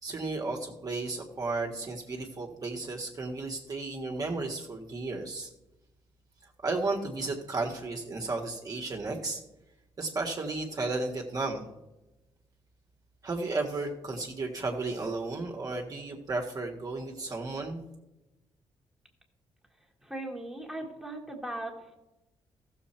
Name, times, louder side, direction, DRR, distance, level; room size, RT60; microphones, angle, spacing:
voice 1, 0.0-5.5 6.6-9.4 10.0-11.7 13.2-17.8, right 3 dB, 40° right, 0 dB, 1.5 m, -33 dB
voice 2, 20.0-21.9, right 1 dB, 5° right, 0 dB, 1.7 m, -38 dB
14.5 x 7.0 x 4.4 m, 0.99 s
cardioid pair, 100°, 10 cm